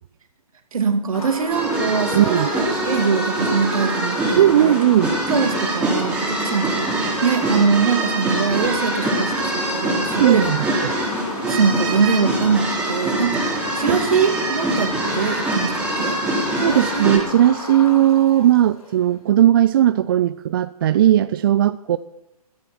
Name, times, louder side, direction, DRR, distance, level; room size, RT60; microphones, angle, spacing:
voice 1, 0.7-4.8 5.3-6.9 7.2-10.5 11.5-13.4 13.7-16.2 16.7-17.1, right 5 dB, 65° right, 2.3 m, -22 dB
sound 1, 1.1-19.1, left 2 dB, 70° left, 4.0 m, -32 dB
sound 2, 1.5-17.2, right 2 dB, 5° right, 3.9 m, -24 dB
voice 2, 2.1-2.5 4.4-5.1 10.1-11.0 13.9-14.0 16.6-22.0, right 12 dB, 35° right, 0.4 m, -17 dB
17.0 x 14.0 x 4.5 m
figure-of-eight pair, 130°, 20 cm